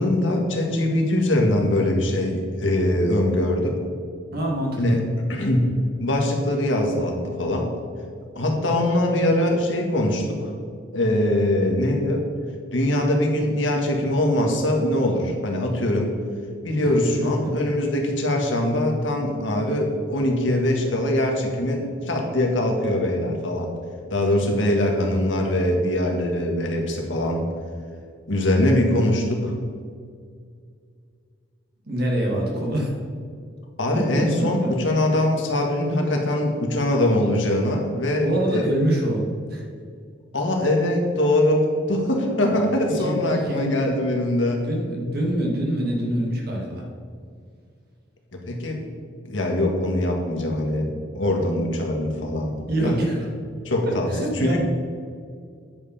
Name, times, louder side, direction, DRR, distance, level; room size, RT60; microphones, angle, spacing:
voice 1, 0.0-3.8 4.8-5.0 5.3-7.7 8.3-10.5 10.9-12.2 12.7-16.1 16.6-23.7 24.1-27.4 28.3-29.5 33.8-38.6 40.3-44.7 48.3-48.8 49.2-53.0 53.6-54.1 54.3-54.6, left 1 dB, 90° left, 1 dB, 1.7 m, -22 dB
voice 2, 4.3-5.0 17.2-17.6 31.9-32.9 33.9-34.5 38.1-39.2 39.5-39.7 42.5-44.1 44.6-46.8 52.7-53.3 53.9-54.6, right 1 dB, 55° right, -1 dB, 1.8 m, -25 dB
9.4 x 5.6 x 5.6 m, 2.2 s
head